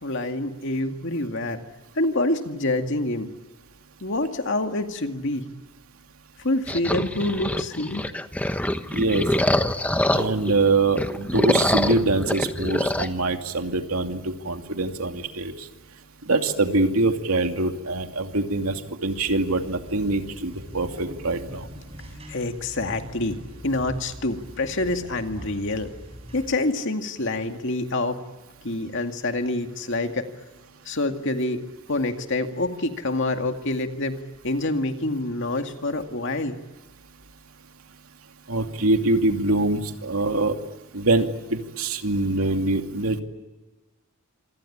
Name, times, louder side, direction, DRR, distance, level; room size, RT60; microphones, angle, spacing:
voice 1, 0.0-1.6 2.0-3.3 4.0-5.4 6.4-8.0 22.3-23.4 23.6-25.9 26.3-28.2 28.6-30.3 30.9-31.6 31.9-34.2 34.4-36.6, left 2 dB, 60° left, 5 dB, 2.2 m, -26 dB
sound 1, 6.7-10.5 10.9-13.1, left 1 dB, 5° left, 1.1 m, -24 dB
voice 2, 8.9-9.3 10.1-15.7 16.2-21.7 38.5-40.6 40.9-43.2, right 2 dB, 85° right, 5 dB, 2.6 m, -24 dB
sound 2, 19.1-26.5, equal, 30° right, 7.4 m, -42 dB
27.0 x 25.5 x 8.7 m, 1.2 s
head